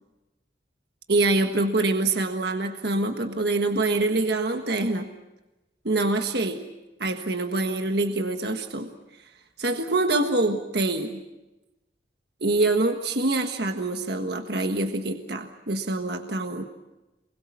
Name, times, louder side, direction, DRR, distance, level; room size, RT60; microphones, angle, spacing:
voice 1, 1.1-5.1 5.8-6.6 7.0-8.9 9.6-11.2 12.4-16.6, right 2 dB, 60° right, 5 dB, 1.5 m, -25 dB
28.0 x 21.5 x 7.3 m, 1.0 s
head